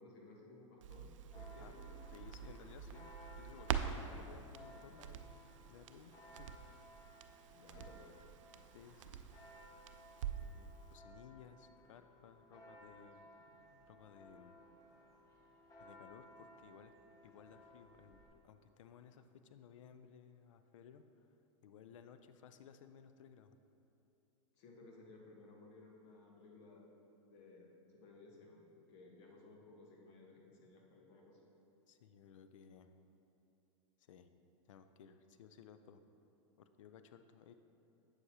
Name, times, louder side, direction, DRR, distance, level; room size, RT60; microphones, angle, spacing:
voice 1, 0.0-1.9 4.0-4.4 4.7-5.0 7.5-8.1 24.6-26.8 27.3-27.7 27.9-31.4, left 2 dB, 65° left, -1 dB, 1.4 m, -59 dB
Crackle, 0.8-10.6 10.9-11.0, right 8 dB, 75° right, 0.4 m, -46 dB
Church bell, 1.3-18.3, equal, 20° left, 1.4 m, -60 dB
voice 2, 2.1-6.5 6.8-6.9 7.8-7.9 8.7-9.3 10.3-14.6 15.8-16.9 17.2-21.3 21.6-23.6 31.9-32.9 34.0-34.3 34.7-36.0 36.6-37.5, left 7 dB, 80° left, 10 dB, 0.4 m, -59 dB
7.8 x 6.6 x 2.8 m, 2.8 s
hypercardioid pair, 115°, 16 cm